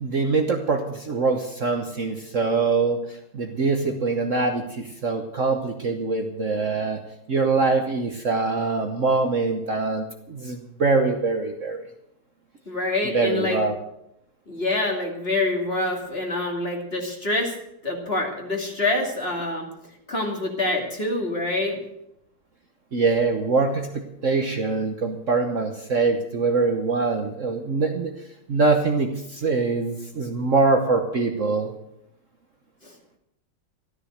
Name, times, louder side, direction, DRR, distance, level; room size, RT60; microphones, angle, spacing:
voice 1, 0.0-7.0 7.3-11.9 13.1-13.7 22.9-28.1 28.5-31.7, right 3 dB, 45° right, 4 dB, 1.3 m, -23 dB
voice 2, 12.7-13.6 14.5-17.5 17.8-19.7 20.1-21.8 32.8-32.9, left 2 dB, 30° left, 1 dB, 2.9 m, -26 dB
13.5 x 13.0 x 6.5 m, 0.81 s
omnidirectional pair, 2.0 m